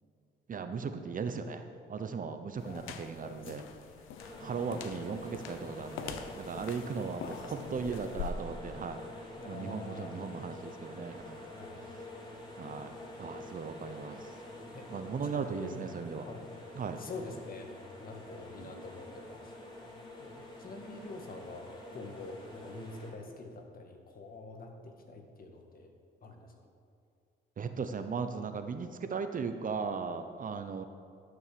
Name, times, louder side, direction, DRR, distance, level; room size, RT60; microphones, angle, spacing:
voice 1, 0.5-3.6 4.4-9.0 9.4-11.4 12.6-14.4 14.9-16.3 16.7-17.0 18.6-18.7 27.6-30.8, right 5 dB, 45° right, 8 dB, 0.8 m, -37 dB
sound 1, 2.6-8.3, left 8 dB, 90° left, 0.8 m, -45 dB
voice 2, 2.6-3.6 5.8-5.9 7.2-8.0 9.4-10.1 11.6-11.8 14.7-14.9 15.2-15.9 16.3-16.6 16.9-17.7 18.0-19.5 20.2-20.3 20.6-25.9 26.2-26.7, left 2 dB, 45° left, 3 dB, 1.8 m, -46 dB
sound 2, 4.2-23.1, left 1 dB, 25° left, 3.0 m, -47 dB
12.5 x 5.9 x 6.9 m, 2.4 s
cardioid pair, 90°, 20 cm